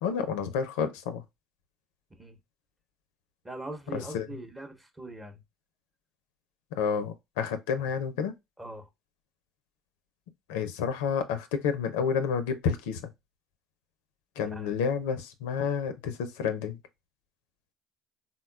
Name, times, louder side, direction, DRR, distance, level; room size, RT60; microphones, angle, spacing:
voice 1, 0.0-1.2 3.9-4.3 6.7-8.4 10.5-13.0 14.4-16.8, left 6 dB, 85° left, 0.4 m, -30 dB
voice 2, 3.4-5.4 7.9-8.0 8.6-8.9 14.4-14.7, right 2 dB, 15° right, 0.8 m, -42 dB
3.8 x 2.2 x 2.2 m
supercardioid pair, 80°, 0 cm